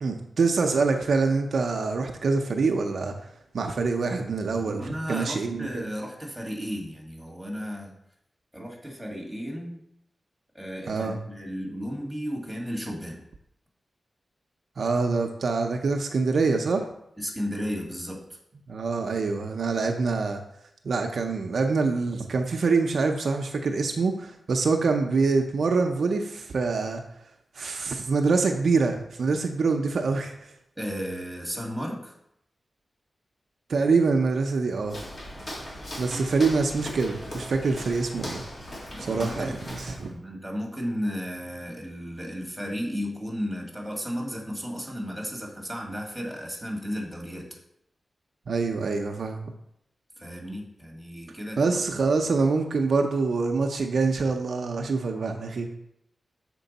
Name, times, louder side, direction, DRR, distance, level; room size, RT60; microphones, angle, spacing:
voice 1, 0.0-3.1 3.5-5.9 10.9-11.2 14.8-16.9 18.7-20.4 20.8-27.0 27.6-30.3 33.7-35.0 36.0-38.4 39.0-40.1 48.5-49.5 51.6-55.8, right 4 dB, 70° right, 4 dB, 0.6 m, -25 dB
voice 2, 4.5-7.9 8.5-9.8 10.5-13.2 17.2-18.2 30.8-32.1 38.9-39.6 40.0-47.5 50.2-51.8 52.2-52.3, equal, ahead, -1 dB, 1.6 m, -34 dB
Walk footsteps, 34.8-40.1, equal, 45° left, 1.8 m, -38 dB
6.6 x 4.5 x 4.0 m, 0.77 s
wide cardioid pair, 110°, 0 cm